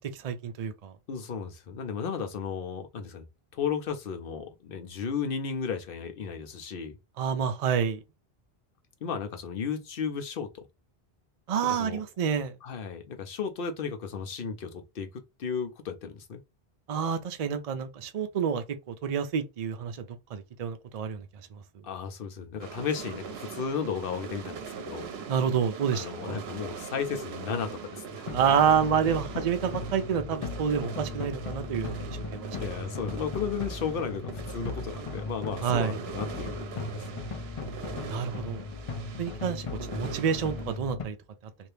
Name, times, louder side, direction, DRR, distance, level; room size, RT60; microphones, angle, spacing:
voice 1, 0.2-0.9 7.2-8.0 11.5-12.5 16.9-20.0 20.3-21.2 25.3-26.4 28.3-32.6 35.6-36.0 38.1-38.6 39.2-39.7 39.9-41.2, right 7 dB, 50° right, 0.5 m, -28 dB
voice 2, 1.1-3.2 3.5-7.0 9.0-10.6 11.8-12.0 12.6-16.4 21.8-25.1 25.9-28.3 32.6-37.0, left 6 dB, 65° left, 0.8 m, -34 dB
sound 1, 22.6-40.8, right 6 dB, 80° right, 0.9 m, -42 dB
sound 2, 28.3-41.0, left 3 dB, 40° left, 0.6 m, -37 dB
2.8 x 2.6 x 3.3 m
omnidirectional pair, 1.0 m